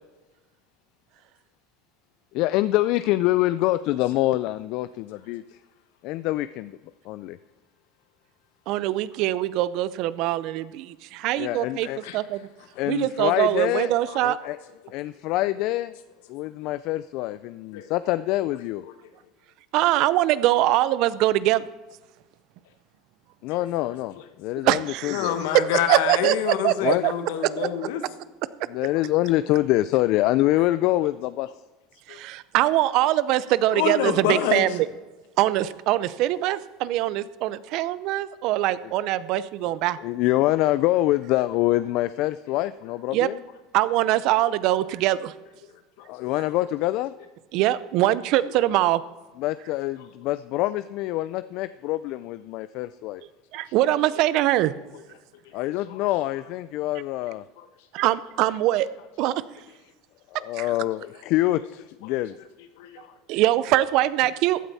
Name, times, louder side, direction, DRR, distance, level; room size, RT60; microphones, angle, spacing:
voice 1, 2.3-5.4 6.0-6.8 7.0-7.4 11.4-12.0 12.8-13.9 14.2-14.6 14.9-15.9 16.3-18.8 23.4-25.4 26.8-27.0 28.7-31.5 40.0-43.4 46.1-47.1 49.4-53.2 55.5-57.4 60.3-62.3, left 16 dB, 60° left, 14 dB, 0.3 m, -25 dB
voice 2, 8.7-11.9 12.1-12.4 12.9-14.4 19.7-21.7 24.6-27.1 27.6-27.7 32.1-34.9 35.4-40.0 43.1-43.3 43.7-45.3 47.5-49.0 53.5-54.7 57.9-58.9 59.2-59.3 60.5-60.7 63.3-64.6, right 14 dB, 60° right, 17 dB, 0.5 m, -23 dB
voice 3, 25.1-28.0 32.1-32.2 33.7-34.6 46.0-46.1 55.9-56.0 62.8-63.1, left 9 dB, 80° left, 9 dB, 1.2 m, -27 dB
15.0 x 9.1 x 4.1 m, 1.2 s
supercardioid pair, 120°, 0 cm